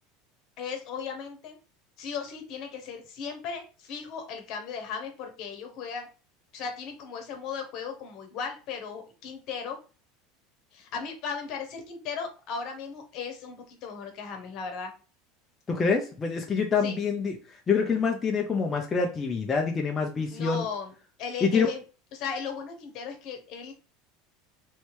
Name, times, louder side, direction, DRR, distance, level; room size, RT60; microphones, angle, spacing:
voice 1, 0.6-1.5 2.0-6.1 6.5-9.8 10.7-14.9 16.8-17.0 20.3-20.9 21.2-21.8 22.1-23.7, left 6 dB, 55° left, 5 dB, 1.1 m, -36 dB
voice 2, 15.7-20.6 21.4-21.7, left 5 dB, 25° left, 2 dB, 0.6 m, -26 dB
3.2 x 2.8 x 3.1 m, 0.35 s
supercardioid pair, 105°, 0 cm